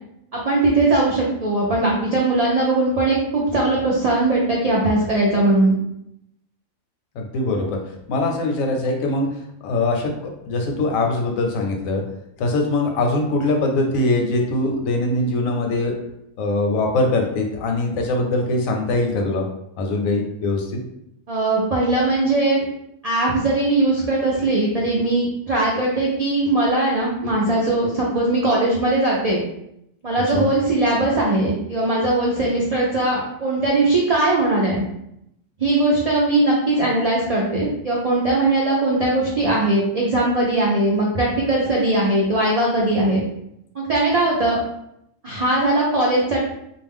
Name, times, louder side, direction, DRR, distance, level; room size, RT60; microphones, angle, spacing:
voice 1, 0.3-5.8 21.3-22.6 23.0-29.4 30.0-34.8 35.6-43.2 43.7-44.6 45.2-46.4, right 2 dB, 90° right, -4 dB, 0.3 m, -20 dB
voice 2, 7.1-7.8 8.1-9.3 9.6-12.0 12.4-15.9 16.4-19.4 19.8-20.8 30.3-30.5, left 2 dB, 85° left, 2 dB, 1.0 m, -22 dB
2.4 x 2.1 x 3.5 m, 0.78 s
omnidirectional pair, 1.4 m